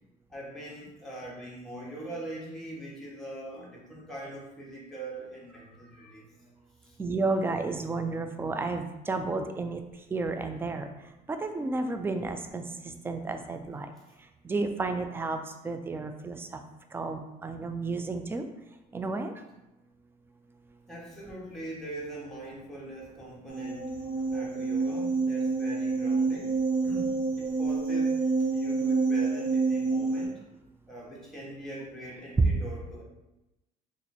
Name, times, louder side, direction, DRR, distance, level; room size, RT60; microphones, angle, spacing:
voice 1, 0.3-6.3 6.8-7.0 20.9-23.9 24.2-26.6 26.8-27.1 27.4-30.4 30.9-33.0, right 1 dB, ahead, -6 dB, 1.2 m, -42 dB
voice 2, 7.0-9.8 10.1-10.9 11.3-13.9 14.4-15.4 15.6-16.6 16.9-18.5 18.9-19.3 32.4-32.5, right 3 dB, 15° right, 6 dB, 0.3 m, -31 dB
sound 1, 23.5-30.3, right 4 dB, 75° right, 1.1 m, -28 dB
2.9 x 2.5 x 4.0 m, 0.96 s
cardioid pair, 110°, 17 cm